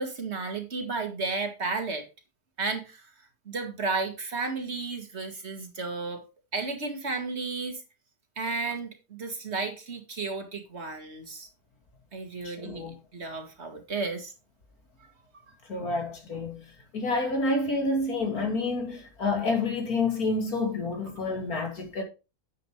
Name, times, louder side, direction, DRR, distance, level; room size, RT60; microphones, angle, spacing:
voice 1, 0.0-2.0 2.6-3.1 3.5-6.2 6.5-7.8 8.4-11.5 12.1-12.8 13.1-14.3, right 3 dB, 45° right, 2.3 m, -33 dB
voice 2, 12.6-12.9 15.7-16.6 16.9-22.0, left 3 dB, 75° left, 3.1 m, -28 dB
9.8 x 8.3 x 3.3 m
omnidirectional pair, 1.6 m